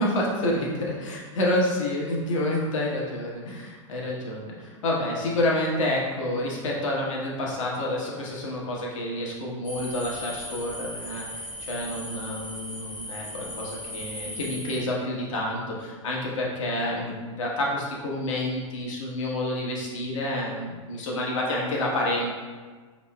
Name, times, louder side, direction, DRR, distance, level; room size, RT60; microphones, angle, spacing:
voice 1, 0.0-11.2 11.7-22.3, left 1 dB, 75° left, -3 dB, 1.1 m, -28 dB
sound 1, 9.6-14.8, left 1 dB, 10° left, 1.0 m, -38 dB
5.2 x 3.0 x 2.3 m, 1.5 s
hypercardioid pair, 110°, 16 cm